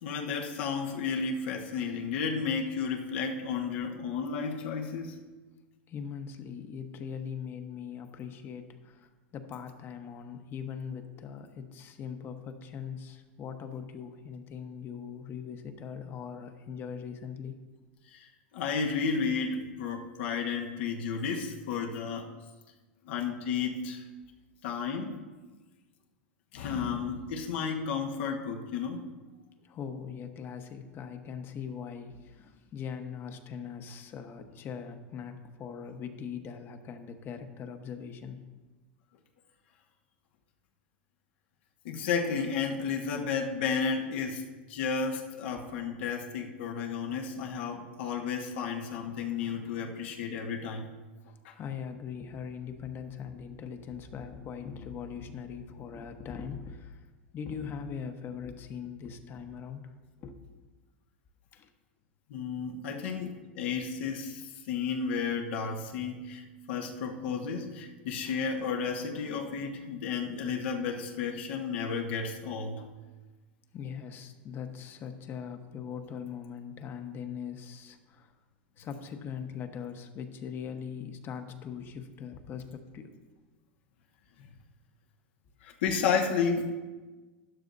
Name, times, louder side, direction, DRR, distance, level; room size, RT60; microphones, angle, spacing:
voice 1, 0.0-5.2 18.1-18.3 18.5-22.3 23.0-24.0 24.6-25.2 26.5-29.0 41.8-50.9 51.4-51.5 62.3-72.8 85.6-86.8, left 5 dB, 70° left, 2 dB, 1.2 m, -32 dB
voice 2, 5.9-17.5 29.6-38.4 51.5-57.0 57.3-59.8 60.2-60.4 61.5-61.7 73.7-78.3 78.8-83.1, left 7 dB, 35° left, 7 dB, 1.1 m, -41 dB
12.5 x 11.0 x 2.7 m, 1.3 s
hypercardioid pair, 110°, 6 cm